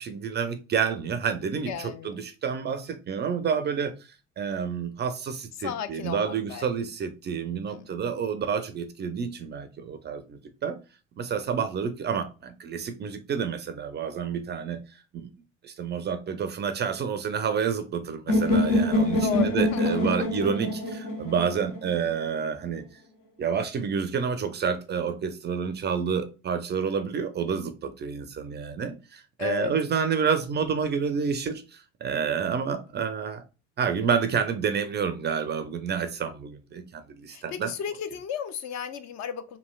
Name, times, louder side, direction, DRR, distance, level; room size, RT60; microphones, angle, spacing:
voice 1, 0.0-3.9 4.4-10.8 11.2-14.8 15.1-15.3 15.6-22.8 23.4-33.4 33.8-37.7, right 6 dB, 30° right, 0.4 m, -29 dB
voice 2, 1.6-2.2 5.6-6.7 7.7-7.9 19.2-20.3 29.4-29.7 37.3-39.6, left 8 dB, 45° left, 0.5 m, -34 dB
sound 1, 18.3-22.2, left 1 dB, 70° left, 1.0 m, -25 dB
3.1 x 2.6 x 2.2 m
hypercardioid pair, 65°, 37 cm